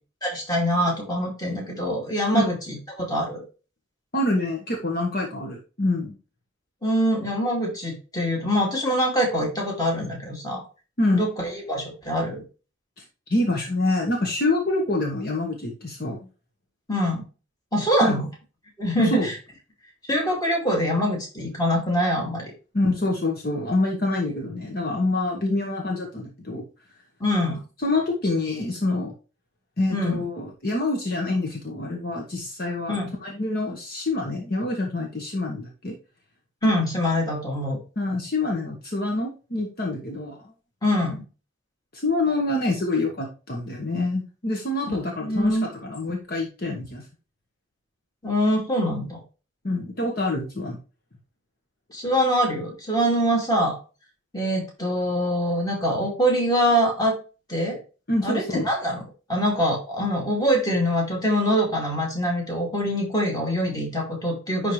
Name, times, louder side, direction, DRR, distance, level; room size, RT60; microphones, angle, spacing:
voice 1, 0.2-3.4 6.8-10.6 11.1-12.4 16.9-17.2 17.7-18.3 18.8-19.3 20.1-22.5 27.2-27.6 29.9-30.2 32.9-33.1 36.6-37.8 40.8-41.2 44.8-44.9 45.2-45.7 48.2-49.2 51.9-53.8 54.3-57.1 57.5-57.8 58.2-59.0 59.3-64.7, equal, 20° left, -1 dB, 2.4 m, -24 dB
voice 2, 4.1-6.1 11.0-11.3 13.3-16.2 18.0-18.2 19.0-19.3 22.7-26.6 27.8-29.1 29.8-36.0 38.0-40.4 41.9-47.0 49.6-50.8 58.1-58.7, left 2 dB, 50° left, 0 dB, 1.3 m, -26 dB
10.5 x 3.7 x 3.2 m, 0.33 s
head